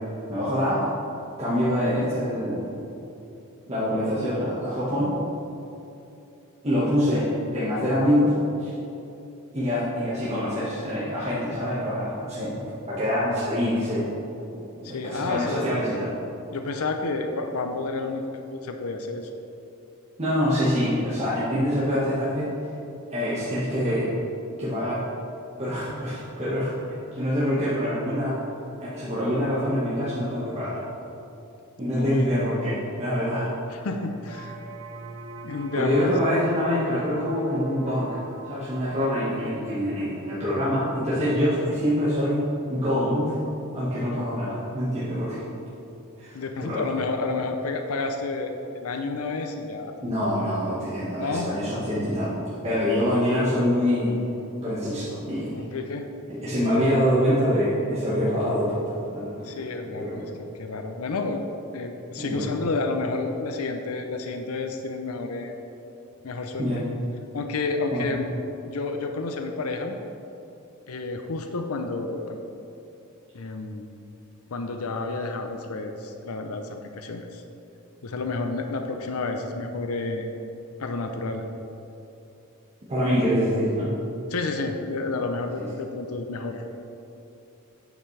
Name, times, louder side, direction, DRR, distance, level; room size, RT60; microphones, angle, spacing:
voice 1, 0.3-0.9 1.4-2.7 3.7-5.2 6.6-7.3 7.5-8.7 9.5-12.6 12.9-14.1 14.8-16.1 20.2-22.6 23.1-24.1 24.6-25.0 25.6-26.7 27.1-28.4 28.8-30.8 31.8-33.5 35.7-38.2 38.4-42.4 42.7-43.4 43.7-45.4 46.2-46.8 50.0-52.3 52.6-54.2 54.6-55.5 56.3-59.4 59.9-60.2 62.2-62.5 66.6-66.8 67.9-68.0 82.9-83.9 85.5-85.7, equal, 30° right, -11 dB, 1.5 m, -25 dB
voice 2, 14.8-15.6 16.5-18.2 18.5-19.3 32.0-32.3 33.7-34.6 35.4-36.1 46.3-50.0 51.2-51.5 55.5-56.1 59.4-61.4 61.7-65.6 66.2-66.7 67.3-68.3 68.7-70.0 70.9-72.4 73.3-73.9 74.5-76.7 77.0-77.4 78.0-80.3 80.8-81.4 84.3-86.6, left 3 dB, 75° left, 5 dB, 0.6 m, -30 dB
sound 1, 34.2-39.2, right 3 dB, 90° right, 0.9 m, -42 dB
9.0 x 7.2 x 3.3 m, 2.8 s
head